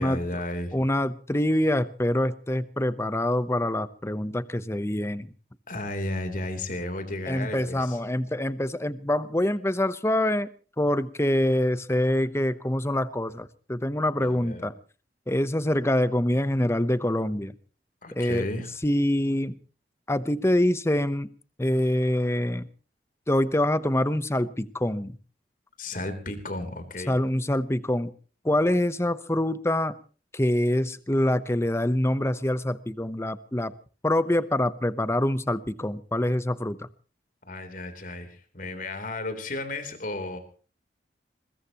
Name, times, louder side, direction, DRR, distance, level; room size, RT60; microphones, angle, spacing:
voice 1, 0.0-0.7 5.7-8.0 14.2-14.7 18.0-18.7 25.8-27.1 37.5-40.4, left 2 dB, 50° left, 8 dB, 3.5 m, -33 dB
voice 2, 0.7-5.3 7.3-10.5 10.8-14.7 15.3-17.5 18.1-18.5 18.8-19.5 20.1-21.3 21.6-22.7 23.3-25.2 27.1-28.1 28.4-29.9 30.3-33.7 34.0-36.9, left 1 dB, 15° left, 14 dB, 0.8 m, -25 dB
21.5 x 21.5 x 3.0 m, 0.38 s
head